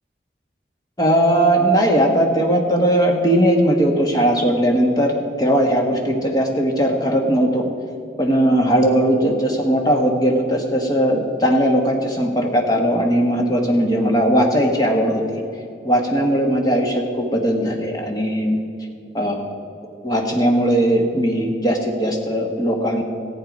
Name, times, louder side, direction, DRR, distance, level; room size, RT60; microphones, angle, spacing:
voice 1, 1.0-7.7 8.2-15.2 15.8-18.6 19.1-19.4 20.0-23.0, equal, 20° left, 1 dB, 1.4 m, -18 dB
14.5 x 8.6 x 5.3 m, 2.7 s
head